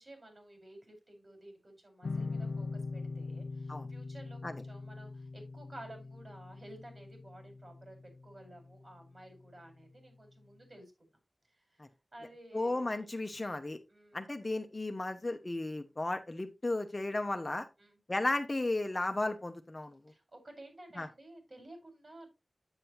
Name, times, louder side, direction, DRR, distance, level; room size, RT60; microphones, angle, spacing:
voice 1, 0.0-8.0 8.2-11.2 11.5-11.8 12.1-13.1 13.9-14.3 17.8-18.0 20.1-22.3, right 1 dB, 55° right, 4 dB, 5.0 m, -53 dB
sound 1, 2.0-9.2, left 3 dB, 90° left, 0.5 m, -42 dB
voice 2, 12.5-13.8 14.1-17.7 18.1-20.0 21.0-21.1, left 2 dB, 35° left, 7 dB, 1.0 m, -34 dB
9.0 x 7.6 x 3.0 m, 0.25 s
wide cardioid pair, 60°, 0 cm